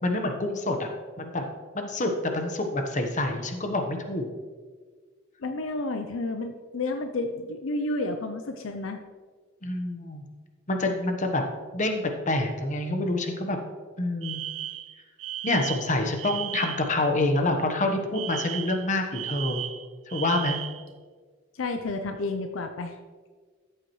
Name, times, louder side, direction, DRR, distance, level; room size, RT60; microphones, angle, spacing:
voice 1, 0.0-0.9 1.2-1.4 1.7-4.3 9.6-10.2 10.7-11.4 11.7-13.6 14.0-14.4 15.4-19.6 20.1-20.6, left 2 dB, 40° left, 4 dB, 1.1 m, -27 dB
voice 2, 5.4-9.0 21.5-22.9, left 2 dB, 75° left, 6 dB, 0.6 m, -31 dB
Alarm, 14.2-16.9 18.1-20.9, right 12 dB, 65° right, 0.4 m, -35 dB
13.0 x 8.0 x 3.1 m, 1.5 s
head